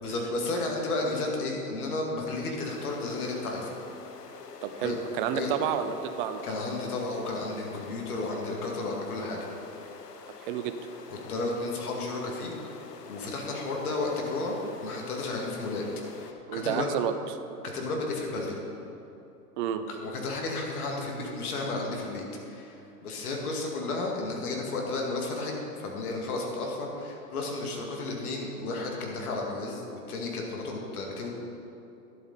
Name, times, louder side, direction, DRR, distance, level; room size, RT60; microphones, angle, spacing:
voice 1, 0.0-3.7 4.8-5.0 5.3-5.5 6.4-9.4 11.1-12.5 13.1-15.8 16.2-16.9 17.7-18.6 19.9-25.5 25.8-31.3, left 2 dB, 65° left, 0 dB, 2.2 m, -33 dB
sound 1, 2.7-16.3, left 5 dB, 85° left, 0.9 m, -46 dB
voice 2, 4.6-6.4 10.4-10.7 16.5-17.1 19.6-19.8, right 9 dB, 35° right, 9 dB, 0.6 m, -30 dB
11.5 x 7.7 x 4.1 m, 2.8 s
hypercardioid pair, 110°, 47 cm